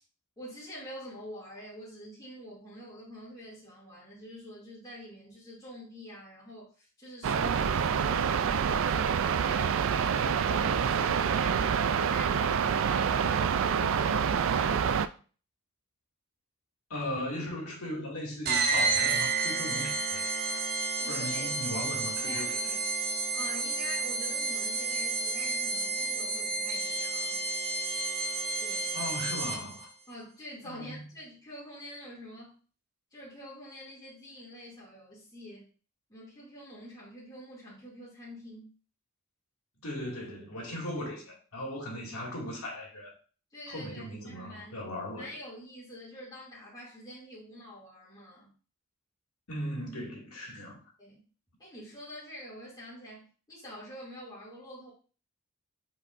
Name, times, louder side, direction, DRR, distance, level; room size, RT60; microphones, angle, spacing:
voice 1, 0.4-11.8 12.1-15.2 21.0-21.9 22.1-22.8 23.3-27.4 28.6-29.0 30.1-32.5 33.1-35.7 36.1-38.7 43.5-44.8 45.2-48.5 51.0-51.2 51.6-54.9, equal, 20° left, 2.6 m, -46 dB
sound 1, 7.2-15.1, right 7 dB, 60° right, 0.4 m, -27 dB
voice 2, 16.9-20.6 21.0-22.6 28.9-29.9 30.6-31.1 39.8-43.1 43.7-45.3 49.5-50.8, left 1 dB, 75° left, 2.3 m, -38 dB
sound 2, 18.4-29.8, right 3 dB, 45° right, 0.9 m, -31 dB
8.4 x 4.7 x 2.6 m
head